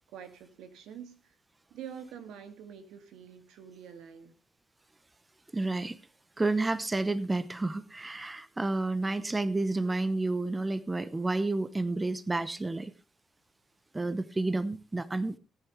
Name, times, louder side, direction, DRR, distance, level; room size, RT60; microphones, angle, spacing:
voice 1, 0.1-1.3 1.7-4.4, right 8 dB, 85° right, 8 dB, 2.3 m, -46 dB
voice 2, 5.5-6.0 6.4-12.9 13.9-15.4, right 2 dB, 20° right, 15 dB, 0.9 m, -30 dB
18.5 x 10.0 x 3.3 m, 0.29 s
cardioid pair, 90°, 0 cm